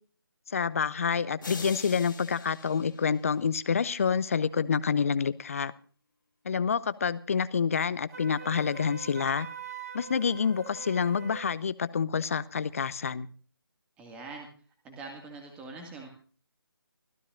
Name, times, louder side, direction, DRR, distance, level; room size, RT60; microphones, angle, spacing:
voice 1, 0.5-5.7 6.4-9.5 9.9-13.3, left 6 dB, 35° left, 17 dB, 0.8 m, -28 dB
sound 1, 1.4-3.7, left 4 dB, 55° left, 3.1 m, -45 dB
Wind instrument woodwind instrument, 8.1-11.5, right 5 dB, 40° right, 1.8 m, -43 dB
voice 2, 14.0-14.5 14.8-16.1, right 3 dB, 10° right, 2 dB, 2.1 m, -43 dB
25.5 x 14.0 x 2.6 m, 0.41 s
figure-of-eight pair, 150°, 13 cm